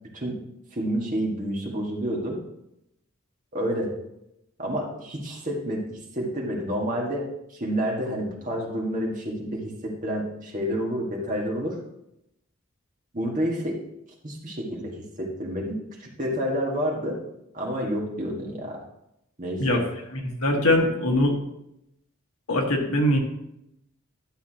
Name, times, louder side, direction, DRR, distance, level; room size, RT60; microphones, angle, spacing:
voice 1, 0.7-2.4 3.5-3.9 4.6-11.8 13.1-13.8 14.2-17.2 17.5-18.8 19.4-19.9, equal, 35° right, -1 dB, 1.7 m, -29 dB
voice 2, 20.1-21.4 22.5-23.2, left 1 dB, 85° left, 1 dB, 1.6 m, -22 dB
12.0 x 7.0 x 2.9 m, 0.81 s
head